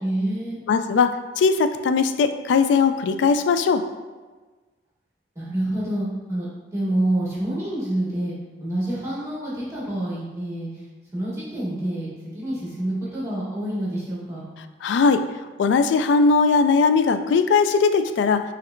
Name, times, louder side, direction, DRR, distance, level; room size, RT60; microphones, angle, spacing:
voice 1, 0.0-0.6 5.3-8.3 8.6-10.8 11.1-14.4, right 1 dB, 15° right, -7 dB, 1.2 m, -27 dB
voice 2, 0.7-3.8 14.8-15.2 15.6-18.4, left 5 dB, 85° left, 9 dB, 0.3 m, -19 dB
5.5 x 3.2 x 2.6 m, 1.3 s
head